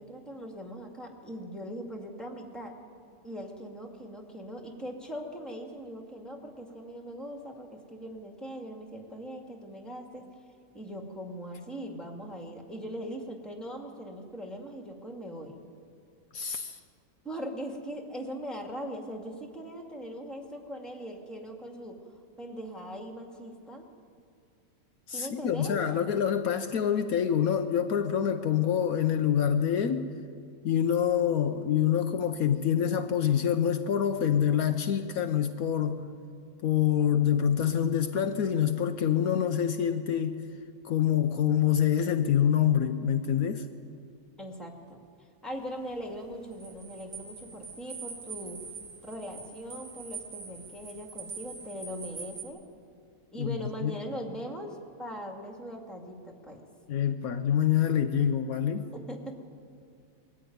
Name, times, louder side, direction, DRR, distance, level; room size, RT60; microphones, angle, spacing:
voice 1, 0.0-2.8 3.2-10.2 10.7-15.6 17.2-22.0 22.4-23.9 25.1-25.8 44.4-48.6 49.0-52.6 53.3-56.6 58.9-59.3, equal, ahead, 2.1 m, -40 dB
voice 2, 16.3-16.8 25.1-30.1 30.6-36.1 36.6-40.4 40.8-43.7 53.4-54.0 56.9-58.9, left 9 dB, 70° left, 1.2 m, -26 dB
sound 1, 45.5-52.4, right 5 dB, 90° right, 3.2 m, -44 dB
21.5 x 14.0 x 9.4 m
omnidirectional pair, 1.6 m